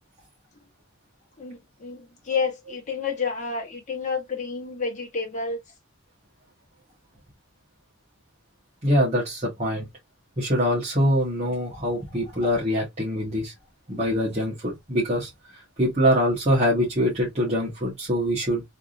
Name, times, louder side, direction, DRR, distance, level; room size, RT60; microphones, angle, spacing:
voice 1, 1.4-5.6, left 5 dB, 40° left, 1.1 m, -30 dB
voice 2, 8.8-9.9 10.4-13.5 13.9-18.6, equal, 35° right, 1.2 m, -24 dB
3.4 x 2.7 x 2.5 m
head